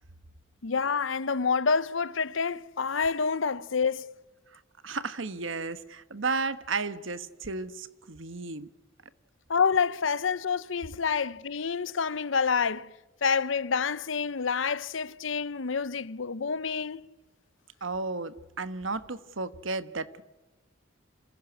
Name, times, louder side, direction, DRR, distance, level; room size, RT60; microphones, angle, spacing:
voice 1, 0.6-4.1 9.5-12.9 13.2-17.1, left 5 dB, 75° left, 0.8 m, -28 dB
voice 2, 4.8-8.7 17.8-20.2, right 3 dB, 75° right, 1.3 m, -33 dB
28.0 x 16.0 x 9.8 m
head